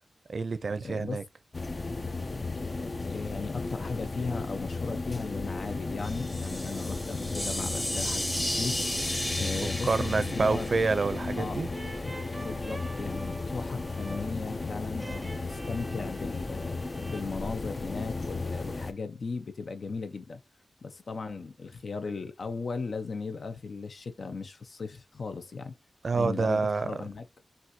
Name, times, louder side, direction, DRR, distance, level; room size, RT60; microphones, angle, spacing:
voice 1, 0.3-1.2 9.6-11.7 26.0-26.9, right 4 dB, 60° right, 0.6 m, -28 dB
voice 2, 0.8-1.3 2.6-10.7 11.4-11.7 12.4-16.8 17.1-20.4 20.8-25.8 26.1-27.2, left 4 dB, 70° left, 0.8 m, -37 dB
sound 1, 1.5-18.9, left 3 dB, 40° left, 0.5 m, -35 dB
sound 2, 6.0-11.9, left 1 dB, 15° left, 1.0 m, -34 dB
sound 3, 11.7-17.2, right 1 dB, 15° right, 0.6 m, -46 dB
6.1 x 2.7 x 2.7 m
wide cardioid pair, 100°, 0 cm